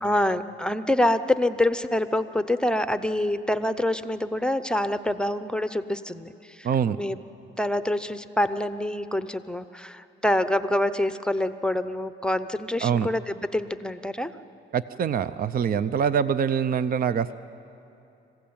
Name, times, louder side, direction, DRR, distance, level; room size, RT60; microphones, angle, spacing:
voice 1, 0.0-6.7 7.0-7.2 7.6-14.3, left 1 dB, 5° left, 12 dB, 0.7 m, -26 dB
voice 2, 6.6-7.0 12.8-13.1 14.7-17.3, right 7 dB, 45° right, 14 dB, 0.6 m, -24 dB
26.5 x 15.5 x 8.8 m, 2.7 s
cardioid pair, 90°, 20 cm